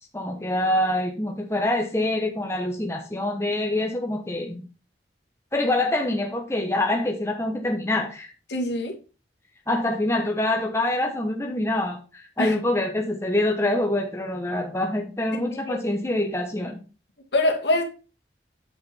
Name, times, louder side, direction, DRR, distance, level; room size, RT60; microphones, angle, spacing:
voice 1, 0.1-4.6 5.5-8.3 9.7-16.8, left 1 dB, 15° left, 1.0 m, -25 dB
voice 2, 8.5-8.9 12.4-12.6 15.5-15.8 17.3-17.8, left 1 dB, 85° left, 1.9 m, -24 dB
8.0 x 5.1 x 4.3 m
head